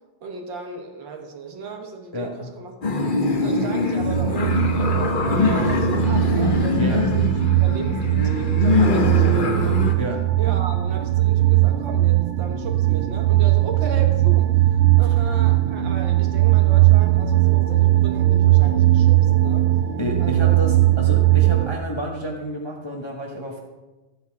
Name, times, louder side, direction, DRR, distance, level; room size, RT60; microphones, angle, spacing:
voice 1, 0.2-2.7 3.4-9.8 10.4-19.7 20.2-20.6, right 4 dB, 65° right, 3 dB, 1.9 m, -35 dB
voice 2, 2.1-2.5 6.8-7.0 10.0-10.2 20.0-23.6, left 1 dB, 20° left, 0 dB, 0.8 m, -30 dB
sound 1, 2.8-9.9, left 3 dB, 50° left, 0.6 m, -22 dB
sound 2, 4.0-21.8, right 16 dB, 80° right, 1.4 m, -19 dB
13.5 x 8.1 x 4.7 m, 1.1 s
omnidirectional pair, 2.3 m